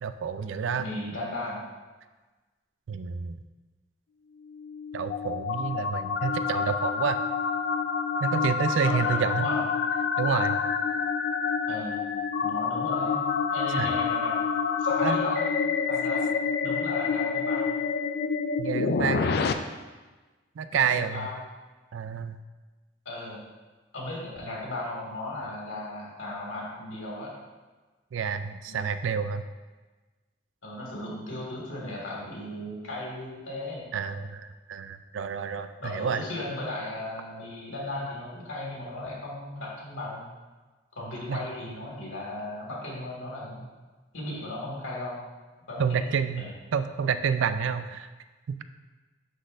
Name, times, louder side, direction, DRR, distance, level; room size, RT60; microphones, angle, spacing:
voice 1, 0.0-0.9 2.9-3.4 4.9-7.2 8.2-9.5 10.2-10.6 13.8-13.9 15.0-15.2 18.6-19.4 20.6-21.3 21.9-22.4 28.1-29.4 33.9-36.2 41.3-41.4 45.8-48.1 48.5-48.6, right 6 dB, 75° right, 10 dB, 0.4 m, -29 dB
voice 2, 0.8-1.6 8.8-9.6 11.7-12.0 12.4-13.2 13.5-14.3 14.8-15.5 15.9-16.2 16.6-17.7 19.7-19.8 20.7-21.4 23.1-23.4 23.9-27.3 28.7-28.8 30.6-33.9 35.8-40.3 41.0-43.7 44.1-45.2 45.7-46.5, left 1 dB, 85° left, -4 dB, 2.1 m, -36 dB
sound 1, 4.4-19.5, left 6 dB, 55° left, 0.3 m, -28 dB
11.5 x 4.1 x 2.6 m, 1.3 s
head